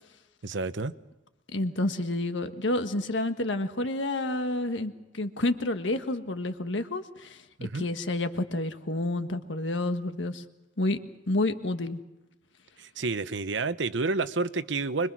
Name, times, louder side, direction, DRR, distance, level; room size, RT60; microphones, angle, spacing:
voice 1, 0.4-0.9 7.6-7.8 12.8-15.1, right 3 dB, 80° right, 13 dB, 0.9 m, -29 dB
voice 2, 1.5-7.4 7.8-10.4 10.8-11.0 11.3-12.0, left 2 dB, 80° left, 8 dB, 1.5 m, -29 dB
25.5 x 22.5 x 6.2 m, 1.0 s
head